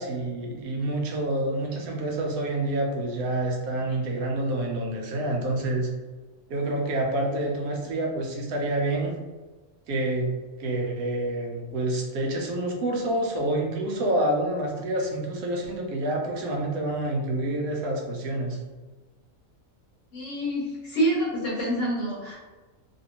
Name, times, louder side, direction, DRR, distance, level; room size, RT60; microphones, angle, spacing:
voice 1, 0.0-5.9 6.5-9.1 9.9-10.3 10.6-18.6, right 1 dB, 90° right, 1 dB, 1.2 m, -28 dB
voice 2, 20.1-22.4, right 1 dB, 60° left, -7 dB, 1.3 m, -27 dB
3.1 x 2.6 x 2.8 m, 1.3 s
omnidirectional pair, 1.5 m